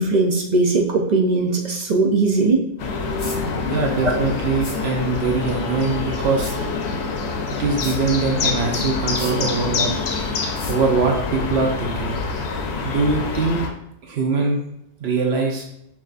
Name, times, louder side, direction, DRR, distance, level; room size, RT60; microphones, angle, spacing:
voice 1, 0.0-2.6, right 3 dB, 50° right, 0 dB, 0.6 m, -19 dB
sound 1, 2.8-13.7, left 4 dB, 90° left, 0.9 m, -26 dB
sound 2, 3.2-3.4 4.6-4.8 6.4-6.6 7.8-8.0 9.2-9.4 10.6-10.8, left 2 dB, 70° left, 1.4 m, -35 dB
voice 2, 3.6-6.5 7.5-9.9 10.7-12.1 12.8-13.6 14.0-14.6 15.0-15.6, right 4 dB, 75° right, 0 dB, 1.1 m, -22 dB
5.8 x 2.8 x 2.4 m, 0.79 s
omnidirectional pair, 1.1 m